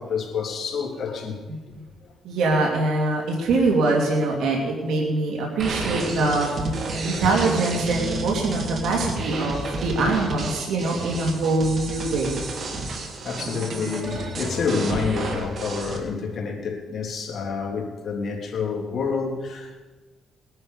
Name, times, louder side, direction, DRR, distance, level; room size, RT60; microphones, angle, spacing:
voice 1, 0.0-1.4 6.9-7.2 9.4-9.5 13.2-19.8, left 5 dB, 55° left, 0 dB, 3.3 m, -28 dB
voice 2, 2.2-6.7 7.0-12.4, right 2 dB, 75° right, -1 dB, 2.7 m, -23 dB
sound 1, 5.6-16.0, right 2 dB, 55° right, 2.3 m, -31 dB
19.5 x 11.0 x 5.3 m, 1.3 s
cardioid pair, 90°, 0 cm